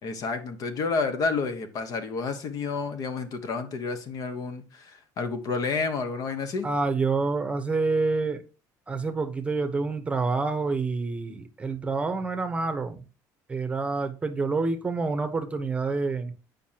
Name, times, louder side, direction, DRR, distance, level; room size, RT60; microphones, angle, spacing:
voice 1, 0.0-6.7, left 4 dB, 50° left, 1.2 m, -30 dB
voice 2, 6.6-8.4 8.9-13.0 13.5-16.3, right 3 dB, 15° right, 0.9 m, -27 dB
9.3 x 5.3 x 2.9 m
cardioid pair, 130°, 8 cm